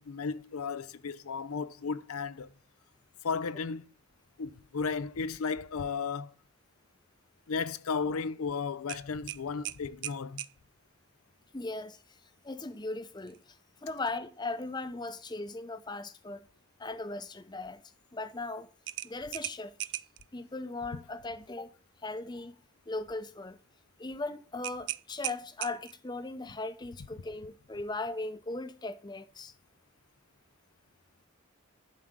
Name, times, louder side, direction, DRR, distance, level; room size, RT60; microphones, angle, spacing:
voice 1, 0.0-2.5 3.2-3.8 4.4-6.3 7.5-10.4, left 5 dB, 80° left, 0.6 m, -34 dB
sound 1, 8.9-10.6 13.2-13.4 13.8-13.9 18.9-20.2 24.6-26.1, right 15 dB, 50° right, 0.4 m, -38 dB
voice 2, 11.5-12.2 12.4-16.5 16.8-17.8 18.1-18.7 19.0-19.7 20.3-21.7 22.0-22.6 22.9-23.6 24.0-29.5, left 2 dB, 20° left, 0.7 m, -38 dB
11.5 x 5.0 x 7.4 m
head